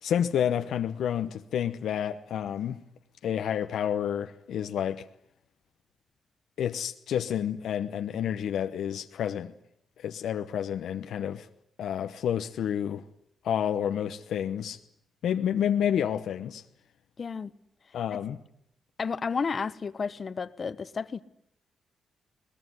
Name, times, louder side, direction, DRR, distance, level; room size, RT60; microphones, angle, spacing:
voice 1, 0.0-2.8 3.2-5.0 6.6-9.5 10.0-11.5 11.8-13.0 13.4-14.8 15.2-16.6 17.9-18.4, left 9 dB, 80° left, 1.0 m, -29 dB
voice 2, 17.2-17.5 18.1-18.2 19.0-21.2, left 5 dB, 40° left, 0.9 m, -32 dB
22.0 x 20.0 x 9.6 m
cardioid pair, 115°, 0 cm